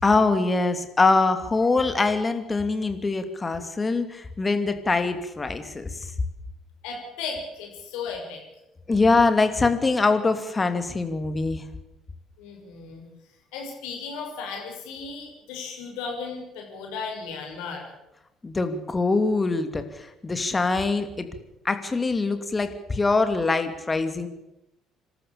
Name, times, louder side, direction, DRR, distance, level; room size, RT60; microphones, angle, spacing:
voice 1, 0.0-6.1 8.9-11.6 18.4-21.3 21.6-24.3, left 3 dB, 25° left, 8 dB, 2.8 m, -23 dB
voice 2, 6.8-8.4 12.4-13.1 13.5-17.8, left 5 dB, 65° left, 1 dB, 6.2 m, -35 dB
26.5 x 13.0 x 8.8 m, 0.91 s
figure-of-eight pair, 50°, 0 cm